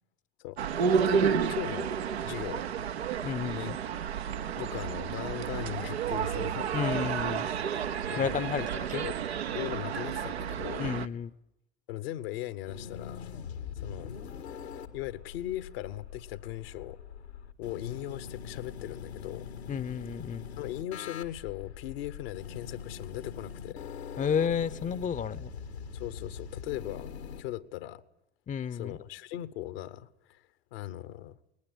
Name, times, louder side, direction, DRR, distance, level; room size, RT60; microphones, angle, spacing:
sound 1, 0.6-11.1, right 7 dB, 75° right, 1.0 m, -31 dB
voice 1, 0.9-1.9 2.2-2.6 3.5-3.7 4.5-6.7 8.1-8.7 9.0-9.2 9.5-10.9 11.9-13.3 13.7-14.1 14.9-17.0 17.6-19.5 20.6-23.9 25.9-27.1 27.4-28.0 28.7-30.4 30.7-31.4, left 14 dB, 65° left, 1.3 m, -39 dB
voice 2, 3.2-3.8 6.7-7.5 8.2-9.1 10.8-11.3 19.7-20.5 24.2-25.5 28.5-29.0, left 7 dB, 25° left, 0.8 m, -31 dB
sound 2, 12.7-27.4, left 7 dB, 80° left, 1.8 m, -43 dB
21.0 x 20.0 x 8.9 m
figure-of-eight pair, 65°, 32 cm